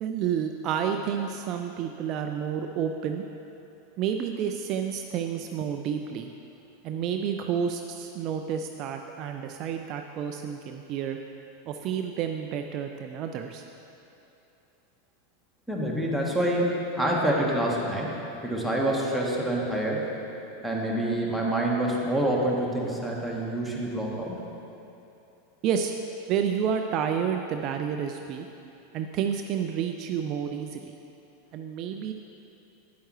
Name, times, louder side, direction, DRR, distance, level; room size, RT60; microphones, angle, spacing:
voice 1, 0.0-3.2 4.0-6.3 6.8-11.2 11.7-13.6 25.6-25.9 26.3-28.5 28.9-30.9 31.5-32.1, right 8 dB, 40° right, 5 dB, 0.3 m, -30 dB
voice 2, 15.7-18.1 18.4-20.1 20.6-24.4, right 1 dB, ahead, -3 dB, 1.4 m, -27 dB
9.2 x 8.8 x 3.1 m, 2.8 s
figure-of-eight pair, 90°, 0 cm